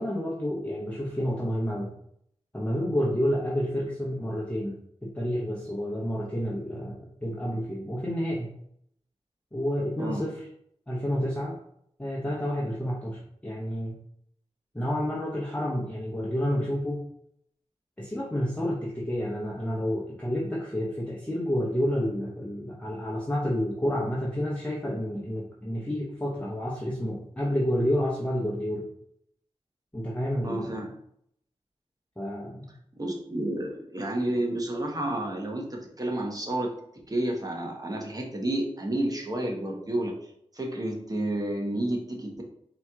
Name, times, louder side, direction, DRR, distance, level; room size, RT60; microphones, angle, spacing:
voice 1, 0.0-1.9 2.5-8.5 9.5-10.5 10.9-11.6 12.0-14.0 14.7-17.0 18.0-28.8 29.9-30.8 32.2-32.7, equal, 10° left, -4 dB, 1.0 m, -29 dB
voice 2, 30.4-30.9 33.0-36.7 37.1-40.1 40.5-42.4, right 1 dB, 35° right, 1 dB, 1.2 m, -30 dB
4.3 x 3.0 x 3.6 m, 0.70 s
cardioid pair, 50°, 12 cm